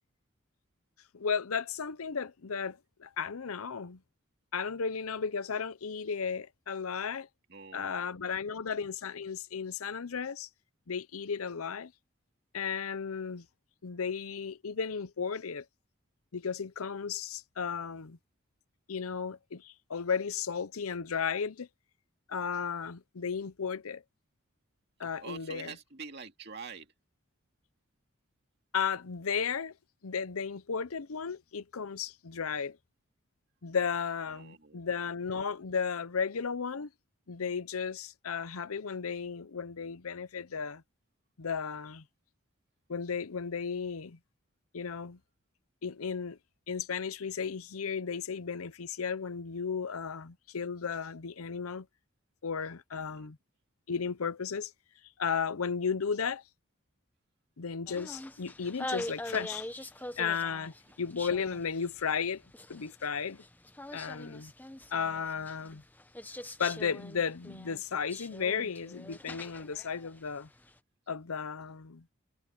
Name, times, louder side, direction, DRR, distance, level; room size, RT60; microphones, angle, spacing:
voice 1, 1.1-4.0 4.5-7.3 7.7-10.5 10.9-11.9 12.5-13.4 13.8-15.6 16.3-18.2 18.9-21.7 22.3-24.0 25.0-25.8 28.7-29.7 30.0-32.8 33.6-36.9 37.3-40.8 41.4-42.0 42.9-44.2 44.7-45.2 45.8-46.4 46.7-51.9 52.4-53.4 53.9-54.7 55.2-56.4 57.6-59.7 60.2-62.4 62.7-63.4 63.9-64.5 64.9-65.8 66.6-70.5 71.1-72.0, left 6 dB, 90° left, 0.7 m, -34 dB
voice 2, 7.5-8.1 25.2-26.9 34.3-34.8 52.9-53.3 59.8-59.9, right 5 dB, 50° right, 2.5 m, -46 dB
sound 1, 57.9-70.7, left 1 dB, 10° left, 0.8 m, -44 dB
head